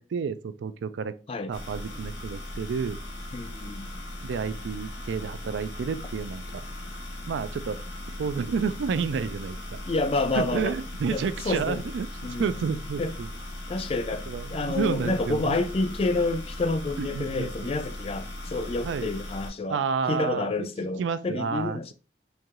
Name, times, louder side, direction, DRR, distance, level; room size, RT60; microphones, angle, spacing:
voice 1, 0.0-1.1 1.5-3.0 4.2-6.6 7.3-7.8 8.1-9.8 10.4-12.1 12.4-13.3 14.3-15.6 17.0-17.5 18.8-19.1 19.7-20.7 21.0-21.9, right 6 dB, 90° right, 0.3 m, -30 dB
sound 1, 1.5-19.5, left 1 dB, 90° left, 1.0 m, -38 dB
voice 2, 3.3-3.9 9.8-10.7 11.1-11.8 12.2-12.7 13.0-13.1 13.7-19.8 20.1-21.9, left 3 dB, 30° left, 0.3 m, -29 dB
4.5 x 2.7 x 2.4 m
head